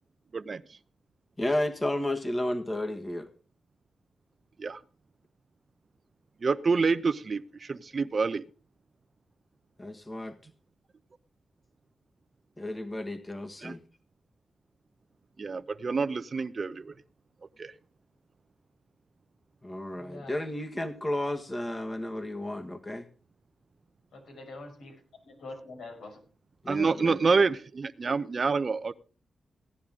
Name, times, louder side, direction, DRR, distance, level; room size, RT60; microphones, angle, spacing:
voice 1, 1.4-3.3 9.8-10.4 12.6-13.8 19.6-23.1 26.6-27.2, left 1 dB, 25° left, 5 dB, 1.6 m, -32 dB
voice 2, 6.4-8.4 13.6-13.7 15.4-16.9 17.6-17.7 26.7-28.9, right 4 dB, 50° right, 15 dB, 0.7 m, -27 dB
voice 3, 19.9-20.3 24.1-26.2, left 2 dB, 90° left, 1 dB, 6.2 m, -45 dB
17.0 x 10.5 x 3.7 m, 0.38 s
cardioid pair, 65°, 0 cm